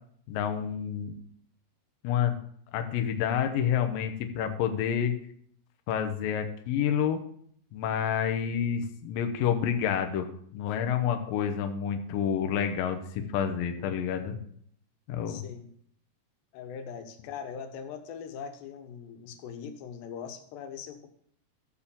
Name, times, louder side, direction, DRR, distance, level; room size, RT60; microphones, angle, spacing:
voice 1, 0.3-1.1 2.0-2.4 2.7-5.1 5.9-7.2 7.7-14.4 15.1-15.4, left 8 dB, 70° left, 6 dB, 2.3 m, -29 dB
voice 2, 15.3-15.7 16.5-21.1, left 7 dB, 90° left, 7 dB, 3.3 m, -41 dB
14.0 x 4.7 x 7.0 m, 0.64 s
omnidirectional pair, 4.8 m